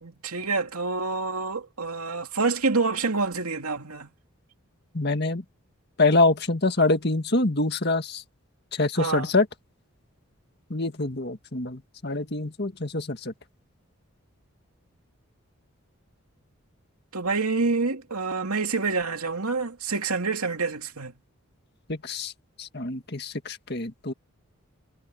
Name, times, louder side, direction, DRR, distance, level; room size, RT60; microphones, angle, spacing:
voice 1, 0.0-4.1 9.0-9.3 17.1-21.1, right 4 dB, 85° right, 2.6 m, -27 dB
voice 2, 4.9-5.4 6.0-8.2 8.7-9.5 10.7-13.3 21.9-22.3 22.6-24.1, left 2 dB, 45° left, 1.9 m, -25 dB
head